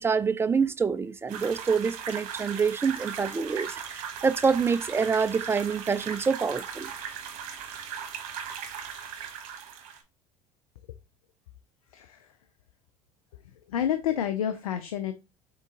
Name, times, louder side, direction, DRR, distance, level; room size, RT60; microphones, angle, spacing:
voice 1, 0.0-6.9, right 5 dB, 15° right, 0.3 m, -26 dB
sound 1, 1.3-10.0, right 7 dB, 60° right, 1.1 m, -38 dB
voice 2, 13.7-15.1, left 10 dB, 80° left, 0.4 m, -28 dB
3.8 x 3.7 x 3.7 m
hypercardioid pair, 70°, 18 cm